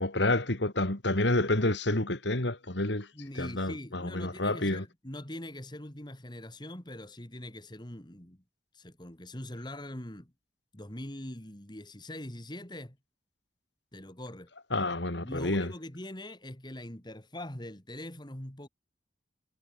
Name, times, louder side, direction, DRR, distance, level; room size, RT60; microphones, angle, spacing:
voice 1, 0.0-3.1 3.4-4.8 14.7-15.7, left 2 dB, 70° left, 2.8 m, -29 dB
voice 2, 3.1-8.4 8.7-10.3 10.7-13.0 13.9-14.5 15.2-18.7, left 1 dB, 25° left, 2.5 m, -42 dB
head